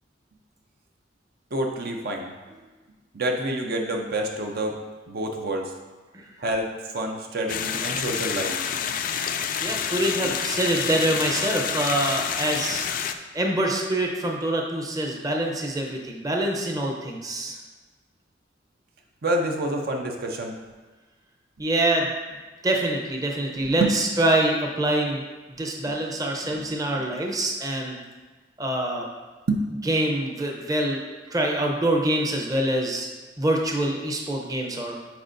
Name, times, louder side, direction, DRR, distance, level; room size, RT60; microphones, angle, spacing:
voice 1, 1.5-2.3 3.1-4.8 5.1-5.7 6.4-8.6 19.2-20.6 23.8-23.9 25.9-26.0 26.6-26.7 27.0-27.1 29.5-29.6, right 1 dB, 55° right, 2 dB, 0.6 m, -27 dB
sound 1, 7.5-13.1, left 8 dB, 50° left, 0.3 m, -28 dB
voice 2, 9.6-12.8 13.3-17.6 21.6-22.1 22.6-25.2 25.6-28.0 28.6-29.1 29.9-31.0 31.3-33.1 33.4-34.9, right 1 dB, 20° right, 0 dB, 0.7 m, -25 dB
9.2 x 4.5 x 2.6 m, 1.3 s
head